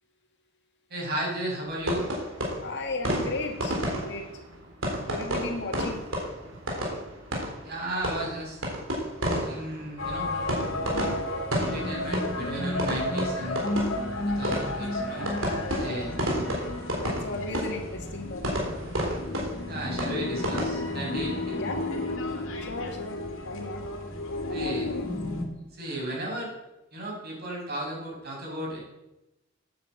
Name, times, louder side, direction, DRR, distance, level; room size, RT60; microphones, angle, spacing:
voice 1, 0.9-2.1 7.6-8.6 9.3-10.3 11.6-13.6 14.2-15.3 15.7-16.1 19.7-21.6 24.5-24.9 25.7-26.5 26.9-28.8, right 1 dB, 50° right, -3 dB, 5.7 m, -34 dB
sound 1, 1.9-20.7, equal, 75° right, 3.6 m, -32 dB
voice 2, 2.6-4.3 5.1-6.0 10.9-11.3 15.6-16.1 17.0-18.6 21.6-22.0 22.7-23.2 23.4-23.8 24.5-25.0, left 2 dB, 60° left, 3 dB, 1.9 m, -35 dB
sound 2, 10.0-25.4, left 2 dB, 85° left, 2.3 m, -32 dB
9.3 x 8.4 x 7.9 m, 0.96 s
head